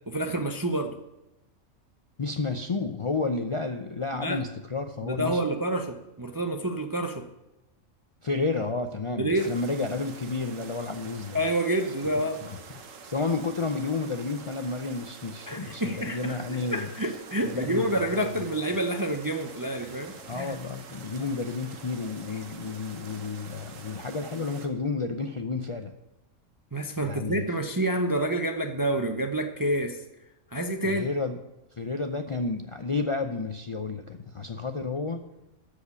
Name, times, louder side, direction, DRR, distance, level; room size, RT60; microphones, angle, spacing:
voice 1, 0.1-0.9 4.1-4.4 5.0-7.2 9.2-9.5 11.3-12.4 15.5-20.6 26.7-30.0 30.5-31.1, right 1 dB, 25° right, 5 dB, 0.4 m, -28 dB
voice 2, 2.2-5.4 8.2-11.4 12.4-12.6 13.0-16.9 17.4-18.3 20.2-25.9 27.0-27.4 30.8-31.4 31.8-35.2, left 3 dB, 40° left, 5 dB, 0.4 m, -31 dB
sound 1, 9.4-24.7, right 5 dB, 80° right, 1.4 m, -46 dB
13.0 x 5.0 x 7.0 m, 0.94 s
omnidirectional pair, 1.3 m